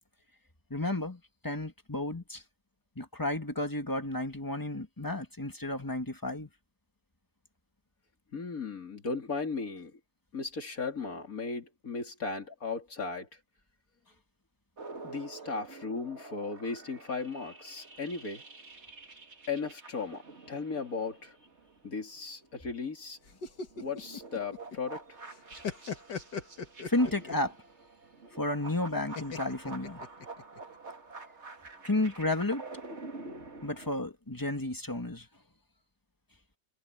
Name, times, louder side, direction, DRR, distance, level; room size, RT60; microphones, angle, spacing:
voice 1, 0.7-2.4 3.0-6.5 26.9-27.5 28.4-30.0 31.8-32.6 33.6-35.3, left 2 dB, 10° left, 1.9 m, -32 dB
voice 2, 8.3-9.9 10.3-13.3 15.0-18.4 19.5-20.2 20.5-21.3 21.8-23.2 23.8-25.2, left 4 dB, 55° left, 3.4 m, -36 dB
sound 1, 14.8-22.7 23.0-33.9, right 3 dB, 40° right, 2.5 m, -48 dB
sound 2, 23.3-25.0 25.3-27.5 29.2-30.6, left 5 dB, 85° left, 2.5 m, -39 dB
omnidirectional pair, 1.8 m